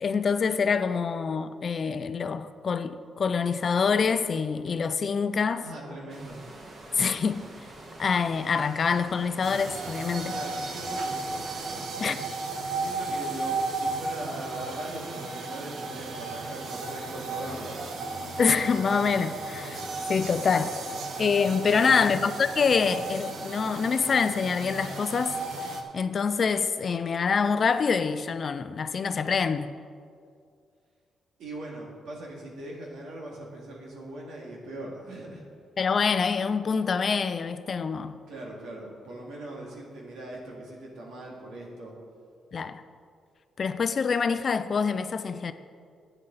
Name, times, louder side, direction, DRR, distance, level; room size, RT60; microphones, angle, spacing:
voice 1, 0.0-5.7 6.9-7.4 8.0-10.4 12.0-12.2 18.4-19.8 20.1-20.8 21.2-25.4 25.9-29.7 35.8-38.2 42.5-42.8 43.6-45.5, left 5 dB, 40° left, 0.4 m, -26 dB
voice 2, 5.6-6.4 10.3-12.1 12.7-17.8 21.7-22.1 31.4-35.4 38.3-41.9, right 1 dB, 85° right, 2.4 m, -40 dB
sound 1, 6.1-11.8, right 2 dB, 40° right, 1.3 m, -47 dB
sound 2, 9.4-25.8, right 3 dB, 60° right, 1.0 m, -34 dB
11.5 x 9.0 x 4.1 m
cardioid pair, 155°, 0 cm